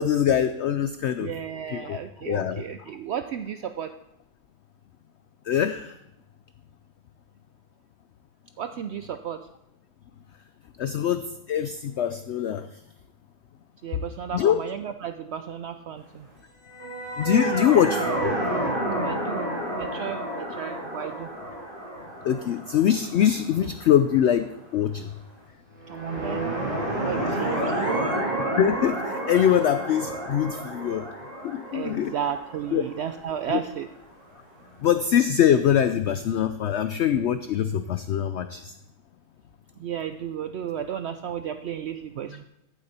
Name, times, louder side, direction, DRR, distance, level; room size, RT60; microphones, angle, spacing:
voice 1, 0.0-1.3 1.7-2.0 2.3-2.6 5.5-5.9 10.8-12.7 14.3-14.6 17.2-18.4 22.2-24.5 24.7-25.1 27.2-27.4 28.6-31.1 31.4-32.1 32.7-32.8 33.5-33.6 34.8-38.7, left 9 dB, 75° left, 11 dB, 0.6 m, -23 dB
voice 2, 1.2-3.9 8.6-9.5 13.8-16.3 19.0-19.5 19.8-21.3 25.9-26.5 27.0-28.1 31.7-33.9 39.8-42.4, right 9 dB, 80° right, 9 dB, 0.5 m, -33 dB
sound 1, 16.7-23.9 25.8-33.6, right 1 dB, 30° right, 3.1 m, -30 dB
14.0 x 8.0 x 4.2 m, 0.84 s
omnidirectional pair, 1.7 m